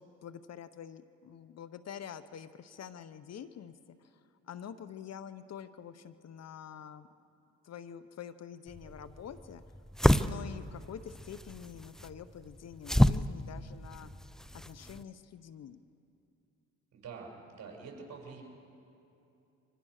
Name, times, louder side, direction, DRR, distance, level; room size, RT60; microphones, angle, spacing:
voice 1, 0.0-4.1 4.5-7.1 7.6-9.6 10.2-14.1 14.5-15.8, left 8 dB, 55° left, 12 dB, 0.9 m, -46 dB
sound 1, 8.7-15.0, left 1 dB, ahead, 0.5 m, -30 dB
voice 2, 16.9-18.4, right 5 dB, 60° right, 0 dB, 7.0 m, -46 dB
25.5 x 25.5 x 6.6 m, 2.8 s
cardioid pair, 90°, 30 cm